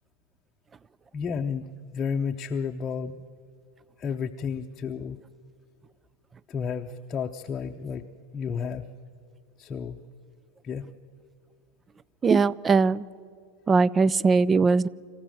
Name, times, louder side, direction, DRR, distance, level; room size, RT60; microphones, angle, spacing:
voice 1, 1.1-3.2 4.0-5.2 6.5-8.0 8.3-8.9 9.6-10.0 10.6-10.9, left 6 dB, 30° left, 3 dB, 0.8 m, -32 dB
voice 2, 12.2-13.1 13.7-14.9, right 4 dB, 20° right, 23 dB, 0.4 m, -20 dB
27.0 x 14.5 x 7.6 m, 2.2 s
hypercardioid pair, 90°, 0 cm